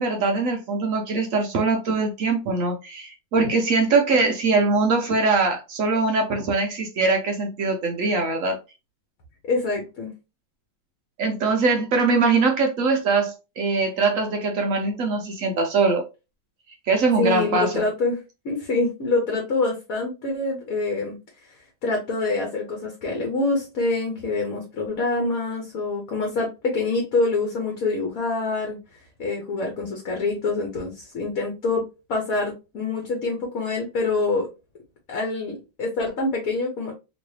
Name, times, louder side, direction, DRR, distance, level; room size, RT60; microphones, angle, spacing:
voice 1, 0.0-8.6 11.2-16.1 16.9-17.8, right 3 dB, 90° right, 0.7 m, -22 dB
voice 2, 9.5-10.1 17.2-18.2 18.4-21.2 21.4-21.6 21.8-28.8 29.2-31.8 32.1-34.5 35.1-36.9, left 3 dB, 55° left, 1.1 m, -25 dB
3.0 x 3.0 x 3.1 m
omnidirectional pair, 2.1 m